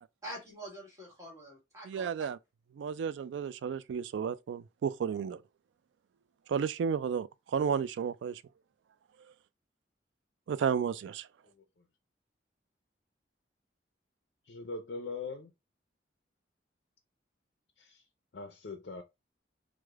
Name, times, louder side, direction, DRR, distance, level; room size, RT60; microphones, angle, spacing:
voice 1, 0.2-2.3, right 1 dB, 15° right, 1.4 m, -46 dB
voice 2, 1.9-2.4 2.8-5.4 6.5-8.4 10.5-11.3, right 7 dB, 80° right, 0.3 m, -32 dB
voice 3, 14.4-15.5 17.8-18.0 18.3-19.0, left 3 dB, 60° left, 0.4 m, -41 dB
4.7 x 2.1 x 2.2 m
head